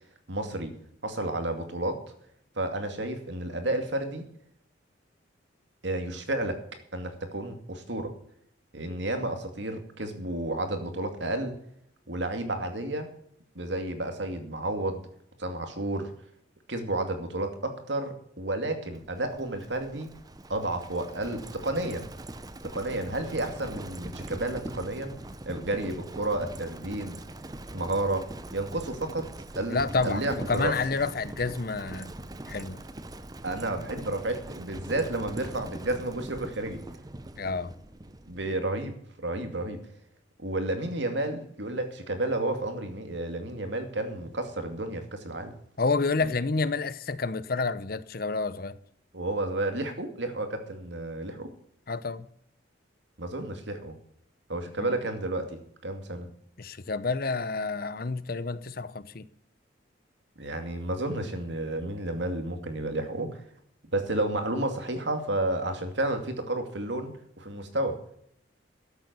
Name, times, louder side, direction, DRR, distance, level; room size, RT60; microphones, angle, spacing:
voice 1, 0.3-0.7 1.0-2.0 2.6-4.2 5.8-6.6 6.9-8.1 8.7-11.5 12.1-13.1 13.5-15.0 15.4-16.1 16.7-20.1 20.5-22.1 22.6-25.2 25.5-27.2 27.7-28.3 28.5-29.3 29.6-30.7 33.4-36.8 38.3-39.8 40.4-45.5 46.2-46.3 49.1-51.5 53.2-53.9 54.5-56.3 60.4-63.4 63.9-68.0, right 1 dB, 70° right, 2.4 m, -31 dB
Livestock farm animals working animals, 18.9-38.6, right 1 dB, 20° right, 0.7 m, -42 dB
voice 2, 29.7-32.1 32.5-32.8 37.4-37.7 45.8-48.8 51.9-52.3 54.8-54.9 56.6-59.3, left 4 dB, 50° left, 0.7 m, -29 dB
13.5 x 8.0 x 8.2 m
head